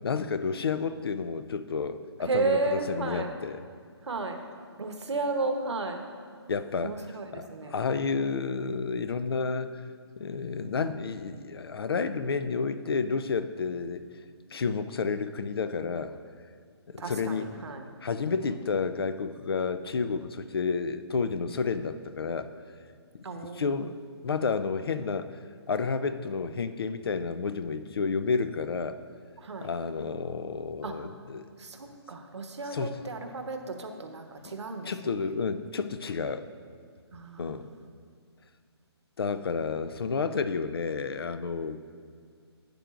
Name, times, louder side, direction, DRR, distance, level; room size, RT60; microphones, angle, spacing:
voice 1, 0.0-3.6 6.5-6.9 7.3-9.8 10.2-14.0 14.5-16.2 16.9-17.6 18.0-22.5 23.1-23.2 23.5-23.9 24.2-25.3 25.7-29.0 29.6-31.5 32.7-33.0 34.4-34.6 34.9-36.4 37.4-37.7 39.2-41.8, left 5 dB, 60° left, 12 dB, 0.5 m, -30 dB
voice 2, 2.2-3.3 4.0-4.4 4.8-6.0 6.8-7.7 17.0-17.9 23.2-23.9 29.4-29.7 30.8-31.0 31.6-34.9 37.1-37.7, right 3 dB, 85° right, 5 dB, 1.1 m, -33 dB
11.5 x 9.1 x 2.5 m, 2.2 s
hypercardioid pair, 175°, 14 cm